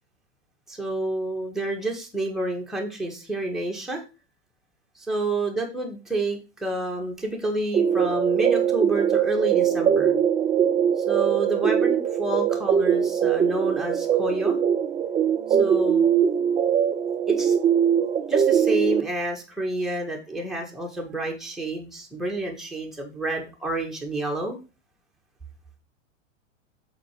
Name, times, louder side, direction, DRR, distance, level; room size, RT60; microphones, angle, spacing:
voice 1, 0.7-4.0 4.9-10.2 11.0-14.6 15.6-16.1 17.3-17.5 18.3-24.6, right 2 dB, ahead, 0 dB, 1.6 m, -29 dB
sound 1, 7.7-19.0, right 8 dB, 15° right, 0.5 m, -22 dB
5.9 x 4.3 x 5.0 m, 0.32 s
hypercardioid pair, 105°, 37 cm